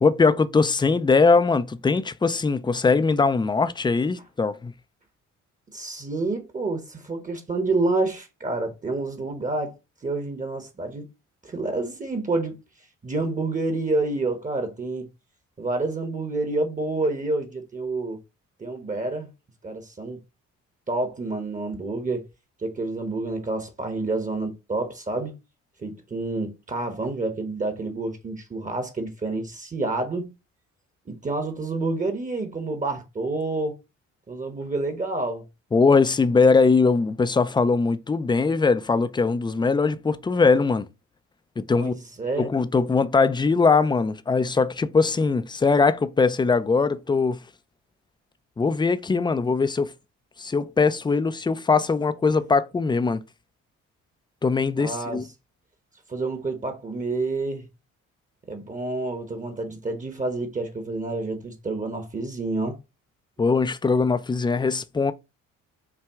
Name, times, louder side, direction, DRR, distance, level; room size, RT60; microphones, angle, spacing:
voice 1, 0.0-4.7 35.7-40.9 41.6-41.9 42.4-47.4 48.6-49.9 50.4-53.2 54.4-55.2 63.4-65.1, left 4 dB, 15° left, 0.4 m, -21 dB
voice 2, 5.7-9.7 10.0-11.1 11.4-12.5 13.0-15.1 15.6-18.2 18.6-19.3 19.6-20.2 20.9-22.2 22.6-25.3 25.8-30.3 31.1-33.8 34.3-35.4 41.7-42.5 54.8-55.2 56.1-57.7 58.5-62.8, right 2 dB, 25° right, 1.0 m, -28 dB
5.8 x 2.3 x 3.5 m
cardioid pair, 90°, 30 cm